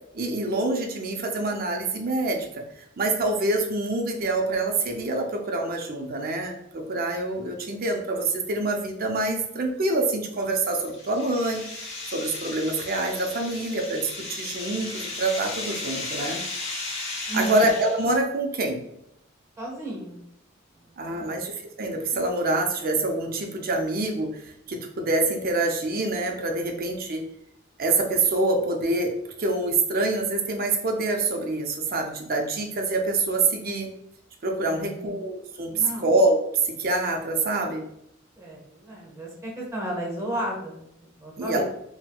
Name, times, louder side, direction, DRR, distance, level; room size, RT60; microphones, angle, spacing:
voice 1, 0.1-2.6 3.0-11.7 12.1-16.4 17.2-18.8 21.0-27.2 27.8-29.1 29.4-33.9 34.4-36.4 36.6-37.8 41.4-41.6, right 2 dB, 50° right, 3 dB, 0.5 m, -26 dB
sound 1, 10.4-18.2, left 3 dB, 35° left, 0.8 m, -35 dB
voice 2, 17.3-17.6 19.6-20.2 20.7-21.4 34.7-35.1 35.7-36.0 38.4-41.6, right 1 dB, 15° right, -2 dB, 0.9 m, -34 dB
4.2 x 2.2 x 2.2 m, 0.77 s
head